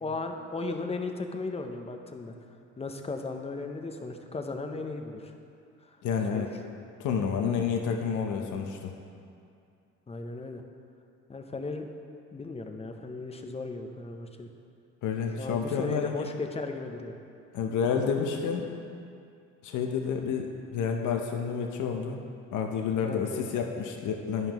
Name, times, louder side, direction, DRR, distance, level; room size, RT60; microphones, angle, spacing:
voice 1, 0.0-2.3 2.8-5.3 6.3-6.5 7.4-7.5 10.1-10.6 11.3-11.9 12.3-14.5 15.4-17.1 23.0-23.4, left 3 dB, 20° left, 5 dB, 0.6 m, -36 dB
voice 2, 6.0-6.5 7.0-8.9 15.0-16.3 17.5-18.7 19.6-22.2 22.5-24.5, left 6 dB, 80° left, 3 dB, 0.7 m, -29 dB
11.0 x 5.4 x 3.0 m, 2.5 s
cardioid pair, 90°, 30 cm